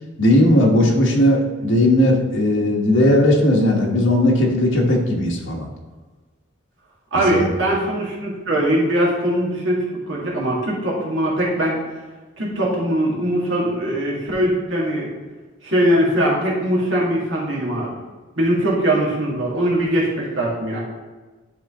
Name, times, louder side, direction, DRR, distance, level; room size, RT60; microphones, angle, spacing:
voice 1, 0.2-5.7 7.1-7.5, left 1 dB, 75° left, -1 dB, 1.4 m, -17 dB
voice 2, 7.1-11.8 12.4-15.1 15.6-17.9 18.4-20.8, right 1 dB, 80° right, -4 dB, 2.1 m, -21 dB
10.5 x 3.9 x 3.7 m, 1.3 s
head